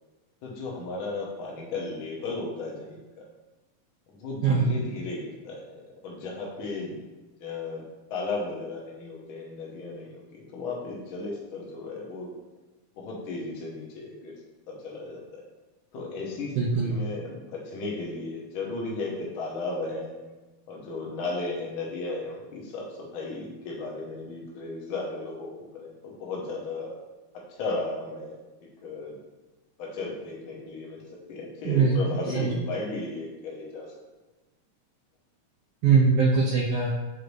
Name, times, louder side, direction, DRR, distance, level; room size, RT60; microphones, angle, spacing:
voice 1, 0.4-3.2 4.1-7.0 7.4-7.8 8.1-12.3 13.0-14.3 14.7-15.4 15.9-16.5 16.8-20.2 20.7-27.0 27.5-28.4 28.8-29.2 29.8-31.0 31.3-33.9, left 3 dB, 75° left, -3 dB, 1.1 m, -35 dB
voice 2, 16.6-16.9 31.6-32.0 32.3-32.5 35.8-36.9, right 5 dB, 75° right, -4 dB, 1.5 m, -21 dB
6.4 x 2.6 x 3.1 m, 1.1 s
omnidirectional pair, 3.3 m